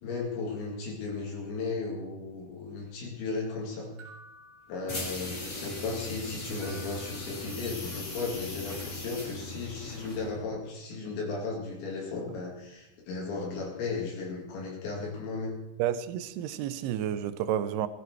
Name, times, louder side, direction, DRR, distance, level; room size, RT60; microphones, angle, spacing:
voice 1, 0.0-3.9 4.7-15.6, left 4 dB, 75° left, -2 dB, 4.7 m, -35 dB
sound 1, 4.0-5.5 6.6-8.1, right 1 dB, 35° right, 2.7 m, -53 dB
sound 2, 4.9-10.5, left 2 dB, 25° left, 1.7 m, -39 dB
voice 2, 15.8-17.9, right 10 dB, 80° right, 13 dB, 2.5 m, -30 dB
17.5 x 13.5 x 4.7 m, 0.90 s
omnidirectional pair, 5.2 m